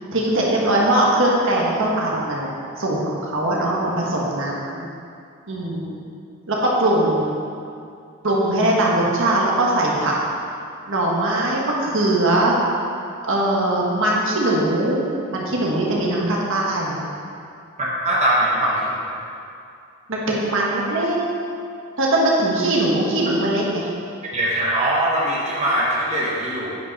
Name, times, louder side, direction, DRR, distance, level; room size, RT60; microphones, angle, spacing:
voice 1, 0.1-4.9 5.5-6.0 6.5-7.3 8.2-10.2 10.9-12.6 13.3-15.0 15.3-17.0 20.1-21.3 22.0-23.9, right 1 dB, 65° right, -3 dB, 1.6 m, -21 dB
voice 2, 17.8-19.0 24.3-26.8, right 1 dB, 30° right, -6 dB, 1.2 m, -21 dB
9.2 x 5.5 x 5.5 m, 2.5 s
head